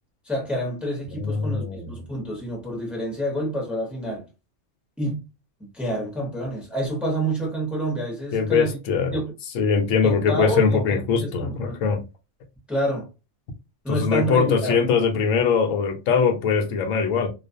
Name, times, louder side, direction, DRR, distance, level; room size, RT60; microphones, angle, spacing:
voice 1, 0.2-4.3 5.0-5.3 5.7-8.8 9.1-9.3 10.0-11.8 12.7-13.1 13.8-14.8, equal, ahead, 0.7 m, -28 dB
voice 2, 1.2-1.9 8.3-9.1 9.5-12.0 13.9-17.3, left 5 dB, 90° left, 1.0 m, -22 dB
2.4 x 2.3 x 2.5 m
omnidirectional pair, 1.3 m